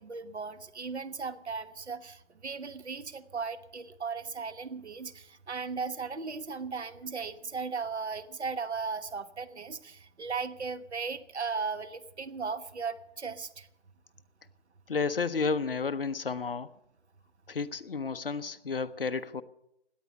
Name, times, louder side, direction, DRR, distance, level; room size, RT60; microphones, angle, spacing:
voice 1, 0.0-13.7, right 5 dB, 70° right, 12 dB, 1.3 m, -37 dB
voice 2, 14.9-16.7 17.5-19.4, left 4 dB, 55° left, 13 dB, 0.8 m, -31 dB
17.0 x 10.5 x 6.8 m, 0.82 s
figure-of-eight pair, 165°, 35 cm